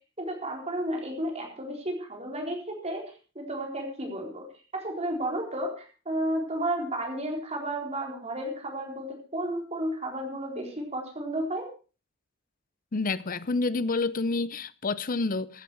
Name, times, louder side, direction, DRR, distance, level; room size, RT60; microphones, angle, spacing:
voice 1, 0.2-4.5 4.7-11.7, right 1 dB, 30° right, 4.0 m, -32 dB
voice 2, 12.9-15.6, left 3 dB, 40° left, 0.7 m, -28 dB
15.0 x 11.0 x 4.7 m
head